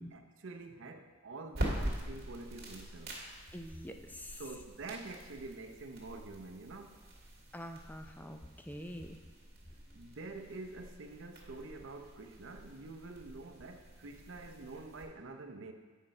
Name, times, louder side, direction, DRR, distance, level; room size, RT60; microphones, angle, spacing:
voice 1, 0.0-3.2 4.4-7.0 9.9-15.7, right 3 dB, 75° right, 6 dB, 0.7 m, -47 dB
sound 1, 1.5-15.0, right 1 dB, 55° right, 1.8 m, -44 dB
voice 2, 3.5-4.6 7.5-9.2, equal, 10° left, 6 dB, 0.4 m, -46 dB
8.5 x 5.2 x 4.3 m, 1.3 s
head